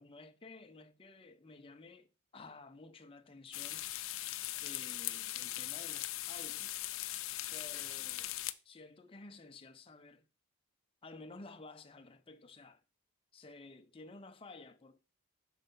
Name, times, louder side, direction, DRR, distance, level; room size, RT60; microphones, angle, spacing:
voice 1, 0.0-2.1 2.3-3.9 4.6-6.8 7.5-10.2 11.0-12.8 13.3-15.0, left 3 dB, 25° left, 0.6 m, -53 dB
sound 1, 3.5-8.5, left 15 dB, 70° left, 0.5 m, -40 dB
6.6 x 5.4 x 5.3 m
head